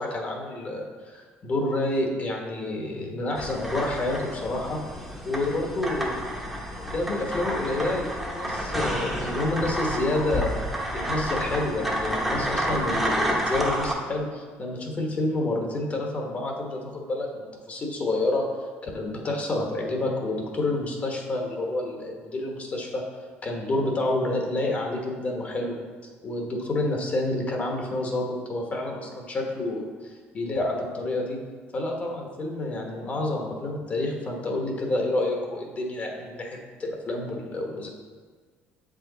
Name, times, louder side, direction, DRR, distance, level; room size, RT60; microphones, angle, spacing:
voice 1, 0.0-4.8 5.2-6.2 6.8-10.6 10.9-18.5 18.8-23.0 23.4-25.8 26.2-31.4 31.7-37.9, left 2 dB, 35° left, 1 dB, 1.2 m, -29 dB
sound 1, 3.4-13.9, equal, 5° right, 1.0 m, -30 dB
7.4 x 5.1 x 3.9 m, 1.5 s
cardioid pair, 115°, 4 cm